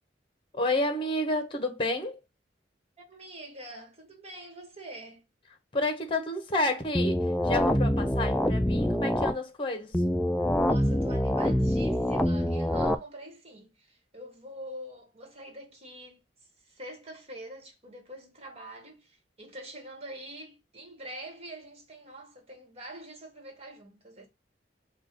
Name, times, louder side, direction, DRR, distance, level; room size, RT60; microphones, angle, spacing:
voice 1, 0.5-2.2 5.7-9.9, left 2 dB, 30° left, 1.0 m, -30 dB
voice 2, 3.0-5.2 10.7-16.2 16.6-24.3, right 1 dB, 35° right, 1.6 m, -45 dB
sound 1, 6.9-9.3 9.9-12.9, left 1 dB, 5° left, 0.3 m, -25 dB
4.3 x 2.4 x 4.5 m
head